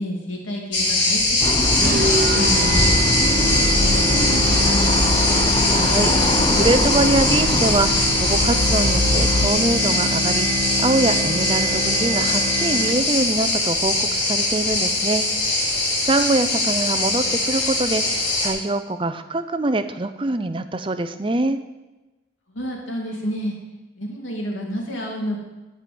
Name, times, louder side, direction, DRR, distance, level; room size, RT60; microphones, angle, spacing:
voice 1, 0.0-1.9 2.3-5.2 22.5-23.5 24.0-25.4, equal, 85° left, 0 dB, 2.6 m, -30 dB
sound 1, 0.7-18.5, left 2 dB, 65° left, 4.3 m, -21 dB
sound 2, 1.4-9.5, left 1 dB, 25° left, 0.7 m, -23 dB
sound 3, 1.8-13.2, right 1 dB, 45° right, 0.9 m, -26 dB
voice 2, 5.3-21.6, right 2 dB, 25° right, 11 dB, 0.5 m, -24 dB
12.0 x 5.0 x 7.7 m, 1.1 s
head